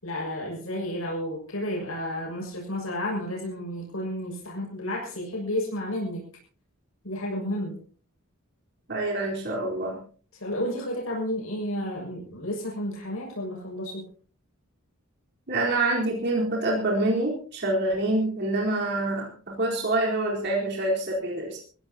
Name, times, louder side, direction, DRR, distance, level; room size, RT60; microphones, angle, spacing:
voice 1, 0.0-6.2 7.0-7.8 10.3-14.0, left 1 dB, 90° left, -2 dB, 6.7 m, -31 dB
voice 2, 8.9-10.0 15.5-21.6, right 2 dB, 55° right, -3 dB, 4.3 m, -26 dB
24.5 x 16.0 x 2.9 m, 0.42 s
head